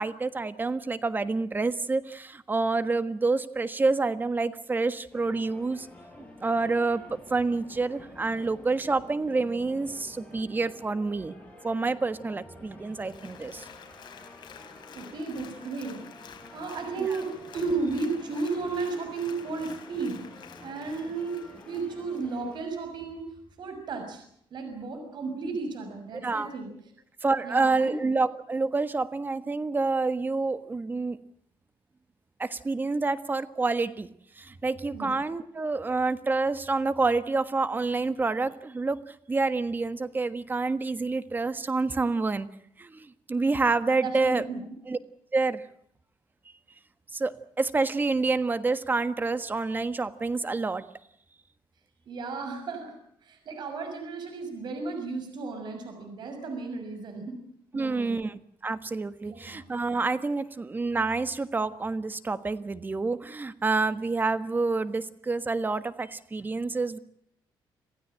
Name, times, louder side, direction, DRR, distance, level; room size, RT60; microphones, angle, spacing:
voice 1, 0.0-5.9 6.4-11.3 11.6-13.7 17.0-17.1 26.2-26.5 27.2-31.2 32.4-42.5 42.8-44.4 44.9-45.0 45.3-45.6 47.1-50.8 57.7-67.0, right 3 dB, 20° right, 12 dB, 1.4 m, -28 dB
sound 1, 5.1-22.6, left 2 dB, 15° left, 7.0 m, -49 dB
Applause, 12.9-22.7 23.1-23.2, left 8 dB, 65° left, 4.2 m, -50 dB
voice 2, 14.9-16.0 16.2-23.2 23.6-24.2 24.5-26.7 27.4-28.0 34.9-35.1 44.0-44.6 52.1-57.4 57.7-58.2 59.2-59.6, right 4 dB, 60° right, 5 dB, 6.2 m, -34 dB
27.0 x 15.5 x 9.0 m, 0.70 s
cardioid pair, 120°, 9 cm